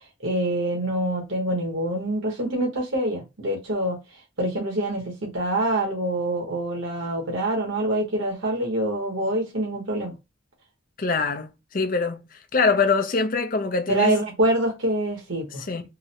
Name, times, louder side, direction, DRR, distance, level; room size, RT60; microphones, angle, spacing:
voice 1, 0.2-4.0 4.4-10.1 13.9-15.6, right 1 dB, 90° right, 1.4 m, -25 dB
voice 2, 11.0-12.2 12.5-14.2 15.7-15.8, left 4 dB, 45° left, 0.6 m, -23 dB
3.7 x 2.2 x 2.8 m
head